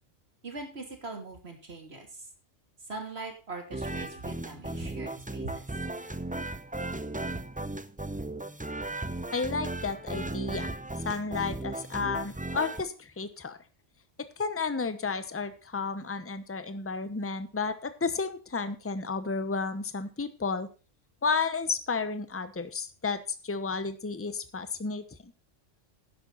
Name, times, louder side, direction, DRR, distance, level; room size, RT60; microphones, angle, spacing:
voice 1, 0.4-2.1 2.9-5.6, right 3 dB, 55° right, 3 dB, 3.0 m, -41 dB
sound 1, 3.7-12.8, right 2 dB, 15° right, 0.3 m, -36 dB
voice 2, 9.3-10.7 11.0-13.6 14.2-20.7 21.2-25.3, left 4 dB, 15° left, 11 dB, 0.8 m, -32 dB
11.0 x 10.5 x 3.9 m, 0.33 s
omnidirectional pair, 1.3 m